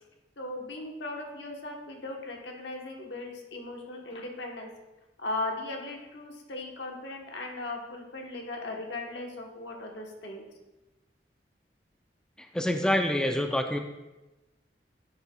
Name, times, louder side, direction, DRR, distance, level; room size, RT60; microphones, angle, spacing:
voice 1, 0.4-4.7 5.2-10.4, left 2 dB, 85° left, 1 dB, 1.2 m, -38 dB
voice 2, 12.4-13.8, left 1 dB, 5° left, 5 dB, 0.4 m, -27 dB
10.0 x 6.5 x 2.3 m, 1.1 s
head